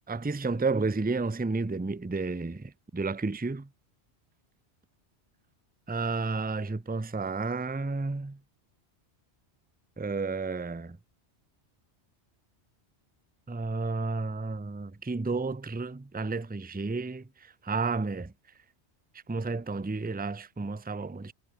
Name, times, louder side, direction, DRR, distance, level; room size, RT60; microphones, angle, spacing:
voice 1, 0.1-3.7 5.9-8.4 10.0-11.0 13.5-18.3 19.3-21.3, right 3 dB, 10° right, 0.5 m, -31 dB
omnidirectional pair, 1.2 m